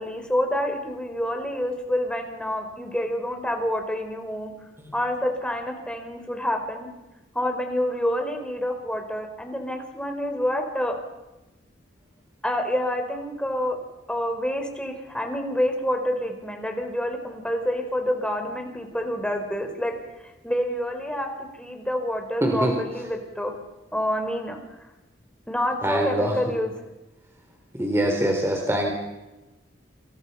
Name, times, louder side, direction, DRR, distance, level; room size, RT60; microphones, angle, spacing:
voice 1, 0.0-4.5 4.9-6.9 7.3-10.9 12.4-13.8 14.1-20.0 20.4-21.3 21.6-23.5 23.9-24.6 25.5-26.7, left 1 dB, 5° left, 4 dB, 4.7 m, -27 dB
voice 2, 22.4-22.8 25.8-26.4 27.7-28.9, right 1 dB, 15° right, 1 dB, 3.9 m, -23 dB
30.0 x 27.5 x 5.7 m, 1.1 s
head